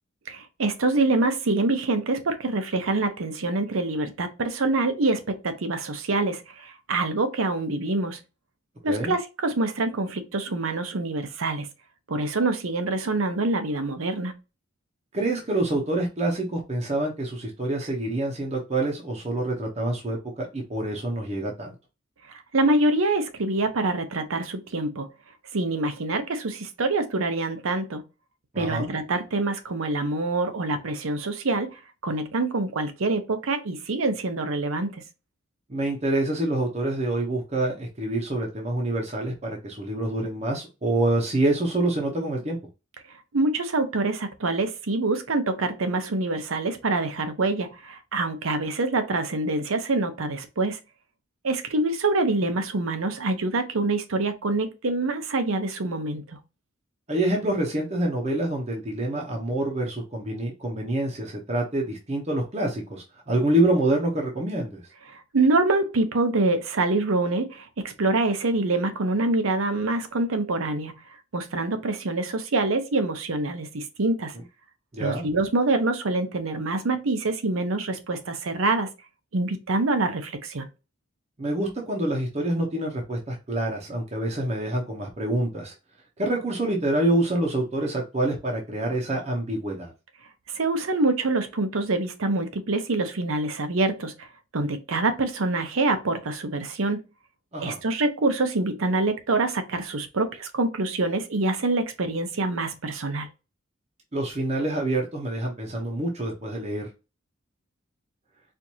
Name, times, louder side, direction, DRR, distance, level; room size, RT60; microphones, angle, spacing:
voice 1, 0.3-8.2 8.8-11.7 12.1-14.3 22.5-25.1 25.5-28.0 28.6-31.8 32.0-35.0 43.3-50.8 51.4-56.2 65.1-70.9 71.3-74.3 75.0-78.9 79.3-80.7 90.5-94.3 94.5-97.0 97.6-103.3, right 2 dB, 85° right, 0.7 m, -25 dB
voice 2, 15.1-21.7 28.5-28.9 35.7-42.6 57.1-64.8 74.9-75.2 81.4-85.7 86.2-89.9 97.5-97.8 104.1-106.9, right 1 dB, 30° right, 0.7 m, -26 dB
4.4 x 2.5 x 2.7 m
head